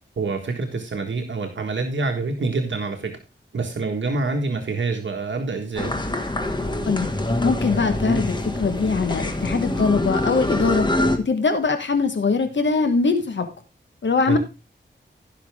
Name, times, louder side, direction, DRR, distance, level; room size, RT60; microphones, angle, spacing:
voice 1, 0.2-3.2 3.5-5.9 14.3-14.4, right 3 dB, 70° right, 3 dB, 1.5 m, -26 dB
sound 1, 5.8-11.2, left 1 dB, 20° left, 1.6 m, -25 dB
voice 2, 7.4-10.9 11.2-13.5 14.0-14.4, left 4 dB, 65° left, 8 dB, 1.4 m, -22 dB
15.5 x 5.9 x 3.5 m, 0.28 s
wide cardioid pair, 105°, 20 cm